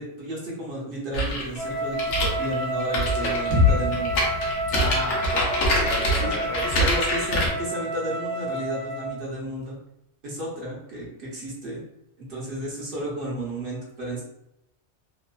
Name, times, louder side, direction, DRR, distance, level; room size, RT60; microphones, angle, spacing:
voice 1, 0.0-4.2 6.2-6.3 6.6-9.8 10.2-11.8 12.2-14.2, right 1 dB, 55° right, -4 dB, 0.8 m, -33 dB
sound 1, 1.1-7.5, equal, 85° left, 1.0 m, -25 dB
Wind instrument woodwind instrument, 1.6-9.2, right 1 dB, 10° left, 0.3 m, -30 dB
sound 2, 3.5-7.4, left 4 dB, 80° right, 1.0 m, -27 dB
voice 2, 4.7-5.5 5.8-6.9, left 1 dB, 55° left, -3 dB, 0.6 m, -31 dB
2.9 x 2.0 x 2.3 m, 0.82 s
omnidirectional pair, 1.2 m